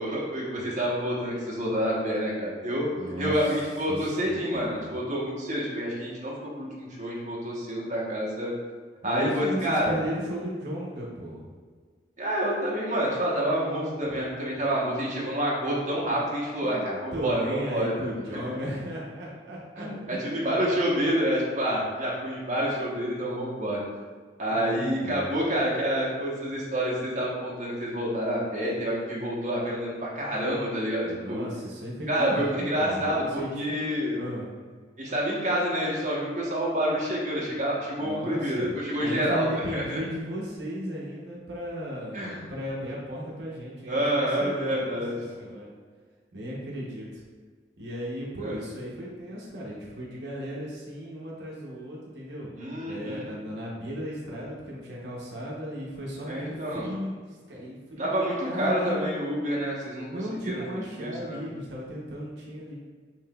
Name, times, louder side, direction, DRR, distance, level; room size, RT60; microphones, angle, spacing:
voice 1, 0.0-2.9 3.2-8.5 9.0-10.0 12.2-17.9 19.8-23.8 24.4-31.4 32.1-34.2 35.0-40.0 42.1-42.4 43.9-45.1 48.4-48.5 52.6-53.3 56.3-56.9 58.0-60.6 61.0-61.4, equal, 40° right, -5 dB, 0.8 m, -28 dB
voice 2, 2.9-3.6 3.9-4.9 9.0-11.4 16.6-20.5 24.5-25.3 31.0-34.5 38.0-38.7 39.0-45.0 45.4-45.7 46.3-47.2 47.8-52.5 52.9-59.1 60.1-62.8, equal, 70° right, -4 dB, 0.7 m, -36 dB
5.6 x 2.8 x 2.2 m, 1.5 s
head